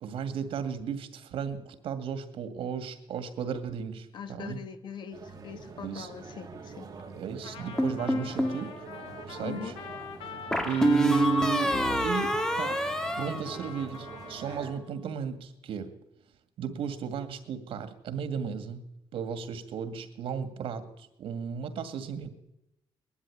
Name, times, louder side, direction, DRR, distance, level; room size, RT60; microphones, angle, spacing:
voice 1, 0.0-4.6 5.8-6.1 7.1-8.7 9.3-9.7 10.7-11.8 12.0-12.8 13.2-15.9 16.6-18.8 19.1-22.3, right 7 dB, 90° right, 10 dB, 2.2 m, -34 dB
voice 2, 4.1-6.9 9.4-9.7, left 8 dB, 55° left, 9 dB, 1.9 m, -41 dB
sound 1, 5.1-14.7, right 4 dB, 40° right, 3.3 m, -45 dB
Trumpet, 7.4-14.8, left 6 dB, 85° left, 2.7 m, -44 dB
sound 2, 7.8-8.6 10.5-14.1, equal, 5° left, 1.8 m, -27 dB
21.0 x 12.5 x 9.9 m, 0.86 s
wide cardioid pair, 175°, 9 cm